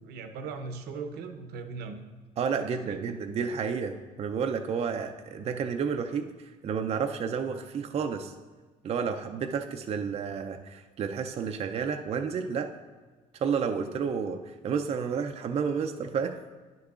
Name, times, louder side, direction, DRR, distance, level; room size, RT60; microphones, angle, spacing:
voice 1, 0.0-2.0 2.6-3.2, right 4 dB, 75° right, 7 dB, 0.8 m, -39 dB
voice 2, 2.4-8.3 8.8-12.7 13.3-16.4, right 6 dB, 40° right, 5 dB, 0.4 m, -31 dB
10.0 x 6.6 x 2.4 m, 1.3 s
cardioid pair, 110°, 17 cm